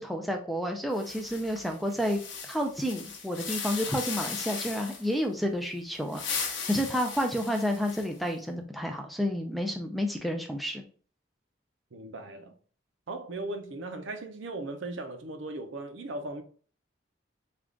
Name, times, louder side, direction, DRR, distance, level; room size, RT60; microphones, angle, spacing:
voice 1, 0.0-10.8, equal, ahead, 0.3 m, -30 dB
sound 1, 0.9-5.1 5.9-8.3, left 5 dB, 80° left, 0.8 m, -37 dB
voice 2, 11.9-12.5 13.1-16.4, right 2 dB, 80° right, 0.6 m, -38 dB
3.5 x 2.4 x 3.7 m
head